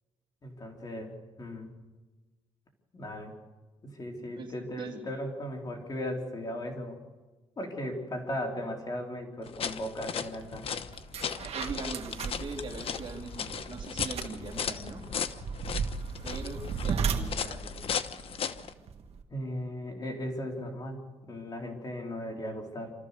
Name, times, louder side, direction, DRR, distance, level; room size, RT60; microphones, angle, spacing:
voice 1, 0.4-1.7 2.9-3.3 3.8-7.0 7.6-10.7 19.3-22.9, left 1 dB, 35° left, 1 dB, 3.9 m, -37 dB
voice 2, 4.4-5.1 11.5-15.0 16.2-17.9 21.6-21.7, right 4 dB, 45° right, 2 dB, 3.4 m, -41 dB
sound 1, 9.4-18.7, left 7 dB, 55° left, 1.1 m, -36 dB
sound 2, 10.4-10.6 10.9-19.2, right 5 dB, 65° right, 1.9 m, -36 dB
27.5 x 14.0 x 6.8 m, 1.2 s
cardioid pair, 105°, 11 cm